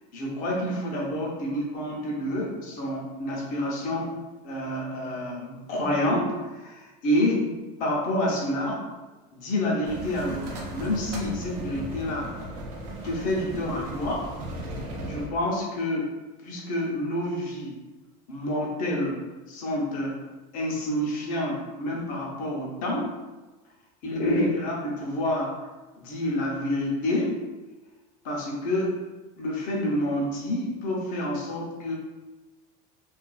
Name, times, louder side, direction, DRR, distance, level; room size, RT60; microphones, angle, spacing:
voice 1, 0.1-7.5 7.8-8.9 9.3-12.3 13.0-14.3 15.0-16.1 16.4-17.8 18.3-19.2 19.5-20.2 20.5-23.1 24.0-25.5 26.0-27.4 28.2-28.9 29.4-32.0, left 1 dB, 45° left, -2 dB, 0.6 m, -28 dB
sound 1, 9.8-15.3, right 1 dB, 85° right, 0.6 m, -36 dB
2.4 x 2.2 x 2.3 m, 1.2 s
cardioid pair, 155°, 19 cm